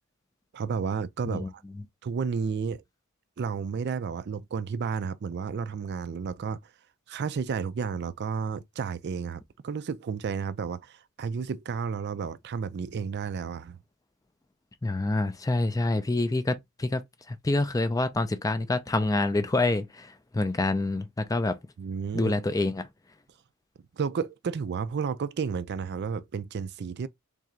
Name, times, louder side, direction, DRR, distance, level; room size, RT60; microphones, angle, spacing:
voice 1, 0.5-1.6 2.0-2.8 3.4-6.6 7.1-13.8 21.8-22.4 23.9-27.1, right 6 dB, 50° right, 0.4 m, -32 dB
voice 2, 14.8-17.0 17.3-21.6 22.1-22.9, left 2 dB, 15° left, 0.4 m, -27 dB
3.7 x 3.4 x 3.1 m
head